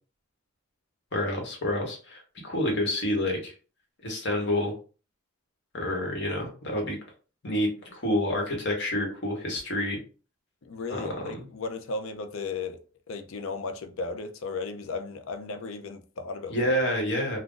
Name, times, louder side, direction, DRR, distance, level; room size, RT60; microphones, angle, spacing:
voice 1, 1.1-3.5 4.0-4.7 5.7-7.0 7.4-10.0 10.9-11.5 16.5-17.4, left 1 dB, 55° left, 1.1 m, -28 dB
voice 2, 10.6-12.8 13.1-16.7, left 4 dB, 75° left, 0.5 m, -35 dB
2.5 x 2.2 x 3.7 m
head